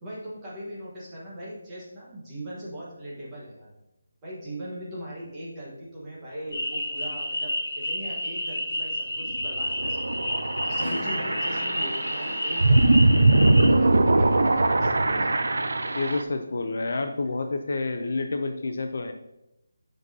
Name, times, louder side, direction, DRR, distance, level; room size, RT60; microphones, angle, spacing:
voice 1, 0.0-3.7 4.2-10.3 10.6-13.1 13.6-15.3, equal, 10° right, -8 dB, 1.4 m, -39 dB
sound 1, 6.5-13.7, left 1 dB, 85° left, 1.6 m, -30 dB
sound 2, 9.3-16.2, right 2 dB, 70° right, 0.6 m, -22 dB
Acoustic guitar / Strum, 10.8-15.4 17.3-17.4, left 2 dB, 70° left, 1.0 m, -42 dB
voice 2, 15.9-19.1, left 3 dB, 45° left, 6 dB, 0.5 m, -29 dB
7.7 x 5.9 x 2.8 m, 0.88 s
hypercardioid pair, 180°, 0 cm